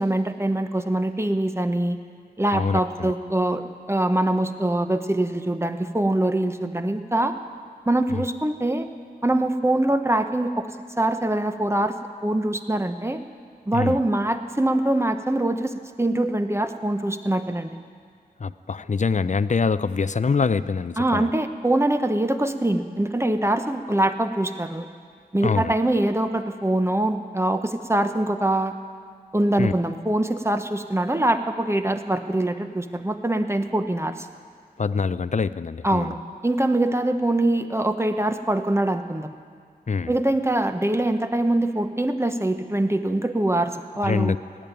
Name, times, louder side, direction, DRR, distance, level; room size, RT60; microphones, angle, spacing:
voice 1, 0.0-2.0 2.4-7.3 7.9-8.9 9.2-10.7 11.0-12.0 12.2-13.2 13.7-17.7 21.0-24.9 25.3-28.7 29.3-34.3 35.8-36.2 36.4-39.3 40.1-44.3, right 1 dB, 15° right, 8 dB, 0.9 m, -23 dB
voice 2, 2.5-3.1 8.1-8.2 13.7-14.0 18.4-21.3 25.4-25.7 29.6-29.7 34.8-36.1 39.9-40.1 44.0-44.4, left 5 dB, 45° left, 15 dB, 0.4 m, -24 dB
17.5 x 7.3 x 9.1 m, 2.1 s
wide cardioid pair, 50°, 17 cm